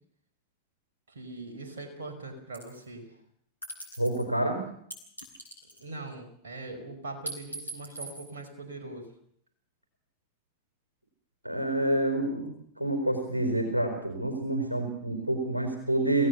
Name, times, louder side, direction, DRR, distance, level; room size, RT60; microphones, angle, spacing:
voice 1, 1.1-3.1 5.8-9.1, right 2 dB, 65° right, 4 dB, 5.1 m, -41 dB
sound 1, 2.5-2.8 3.6-4.2 4.9-6.1 7.3-8.3, right 2 dB, 85° left, 6.3 m, -41 dB
voice 2, 4.0-4.6 11.4-16.3, right 1 dB, 85° right, 6 dB, 4.3 m, -28 dB
27.0 x 17.0 x 7.0 m, 0.68 s
figure-of-eight pair, 90°, 0 cm